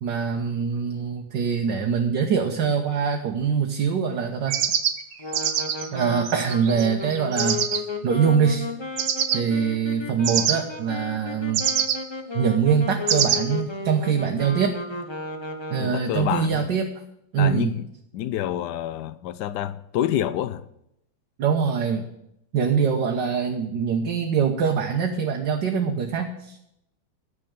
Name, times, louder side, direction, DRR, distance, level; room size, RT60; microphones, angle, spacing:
voice 1, 0.0-4.6 5.9-7.6 8.0-8.7 9.3-11.7 12.3-14.8 15.7-16.9 17.3-17.7 21.4-22.1 22.5-26.7, right 6 dB, 65° right, 1.5 m, -23 dB
sound 1, 4.5-7.8 9.0-9.4 10.2-10.6 11.5-12.0 13.1-13.4, right 9 dB, 80° right, 1.7 m, -24 dB
sound 2, 5.2-16.2, left 3 dB, 30° left, 0.5 m, -33 dB
voice 2, 15.8-16.7 17.4-17.9 18.1-20.6, left 11 dB, 70° left, 1.0 m, -28 dB
10.5 x 6.8 x 8.7 m
omnidirectional pair, 2.2 m